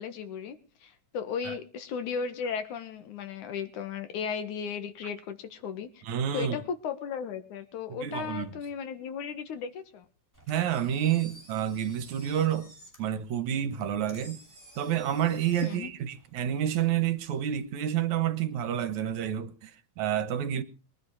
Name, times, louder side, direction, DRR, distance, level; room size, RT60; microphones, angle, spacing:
voice 1, 0.0-6.0 6.3-10.1 15.6-15.9, left 6 dB, 80° left, 3.0 m, -35 dB
voice 2, 6.0-6.6 7.9-8.5 10.5-12.7 13.0-14.4 14.8-19.7 20.0-20.6, right 10 dB, 75° right, 2.5 m, -29 dB
Engine, 10.3-17.7, right 1 dB, 5° left, 6.7 m, -54 dB
21.5 x 11.0 x 4.8 m
omnidirectional pair, 3.4 m